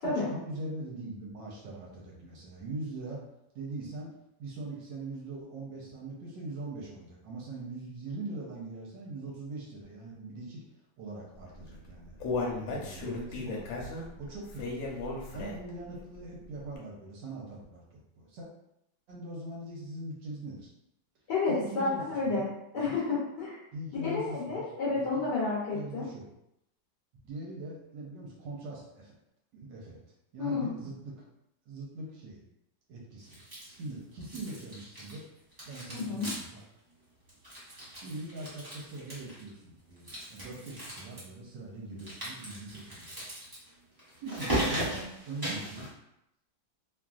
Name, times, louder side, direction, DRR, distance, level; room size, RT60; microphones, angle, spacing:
voice 1, 0.0-3.2 3.5-4.1 4.4-10.6 11.0-12.2 12.5-14.8 15.3-18.5 19.1-20.7 21.5-22.5 22.8-22.9 23.7-24.6 24.9-25.3 25.7-26.3 27.2-29.1 29.5-30.0 30.3-31.1 31.7-32.4 32.9-33.4 33.8-35.2 35.6-36.6 38.0-43.3 44.2-45.9, right 2 dB, 70° right, -3 dB, 1.3 m, -41 dB
Human voice, 11.6-15.8 16.2-16.3 16.7-16.8, left 3 dB, 85° left, 1.4 m, -35 dB
voice 2, 21.3-22.5 22.7-23.6 24.0-26.1 30.4-30.7 36.1-36.3, left 3 dB, 65° left, -7 dB, 1.2 m, -30 dB
sound 1, 33.3-33.9 34.2-35.2 35.5-36.6 36.9-37.0 37.3-39.5 40.0-41.2 42.0-45.9, right 1 dB, 20° right, 0.6 m, -37 dB
3.2 x 2.5 x 2.3 m, 0.82 s
omnidirectional pair, 2.2 m